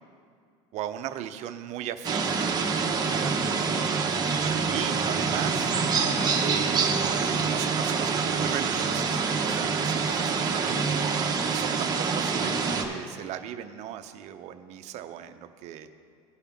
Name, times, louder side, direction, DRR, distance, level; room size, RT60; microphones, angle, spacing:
voice 1, 0.7-2.4 3.1-3.6 4.7-5.7 6.3-11.1 11.4-15.9, right 11 dB, 55° right, 9 dB, 0.6 m, -37 dB
sound 1, 2.0-12.8, right 5 dB, 30° right, 1.0 m, -26 dB
16.0 x 5.6 x 3.5 m, 2.3 s
supercardioid pair, 125°, 15 cm